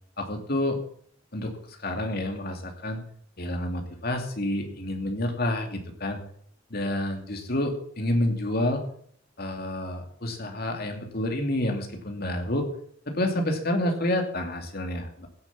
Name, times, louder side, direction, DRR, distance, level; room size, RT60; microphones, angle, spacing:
voice 1, 0.2-0.8 1.3-3.0 3.4-6.2 6.7-8.8 9.4-12.7 13.1-15.3, left 1 dB, 50° left, 4 dB, 2.6 m, -29 dB
16.5 x 7.5 x 7.2 m, 0.62 s
head